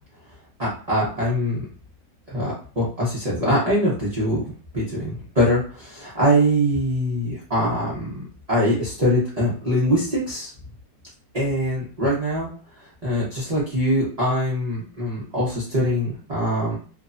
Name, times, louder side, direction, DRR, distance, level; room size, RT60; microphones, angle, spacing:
voice 1, 0.6-1.7 2.3-10.5 11.3-12.5 13.0-16.8, equal, 55° right, -9 dB, 0.4 m, -23 dB
3.1 x 2.0 x 2.5 m, 0.41 s
omnidirectional pair, 2.0 m